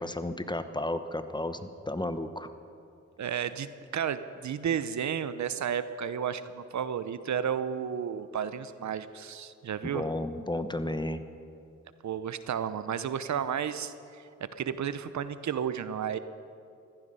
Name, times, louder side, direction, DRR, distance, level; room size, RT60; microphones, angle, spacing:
voice 1, 0.0-2.5 9.8-11.2, left 1 dB, 15° left, 10 dB, 1.0 m, -33 dB
voice 2, 3.2-10.0 12.0-14.2 14.6-16.2, right 8 dB, 70° right, 13 dB, 0.8 m, -32 dB
15.0 x 14.5 x 5.5 m, 2.5 s
cardioid pair, 55°, 30 cm